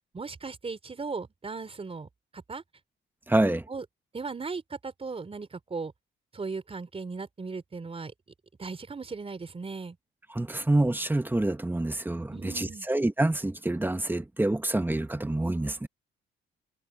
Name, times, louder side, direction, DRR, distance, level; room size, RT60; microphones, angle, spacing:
voice 1, 0.1-2.6 3.7-3.8 4.1-5.9 6.3-8.1 8.6-10.0 12.3-12.9, right 4 dB, 30° right, 3.9 m, -37 dB
voice 2, 3.3-3.6 10.3-15.9, right 2 dB, 10° right, 1.3 m, -27 dB
cardioid pair, 90°, 20 cm